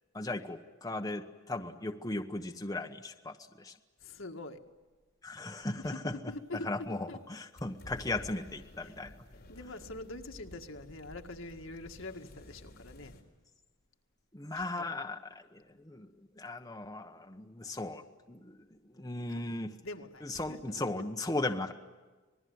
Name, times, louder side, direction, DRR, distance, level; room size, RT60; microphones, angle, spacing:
voice 1, 0.1-3.8 5.2-6.1 6.6-9.2 14.3-19.8 20.2-21.7, left 2 dB, 15° left, 1.0 m, -37 dB
voice 2, 4.0-4.7 5.6-7.2 8.8-8.9 9.5-13.2 14.5-14.9 19.3-19.5 19.8-21.1, left 2 dB, 70° left, 1.9 m, -45 dB
sound 1, 7.6-13.2, left 1 dB, 45° left, 4.2 m, -52 dB
26.5 x 20.5 x 9.4 m
head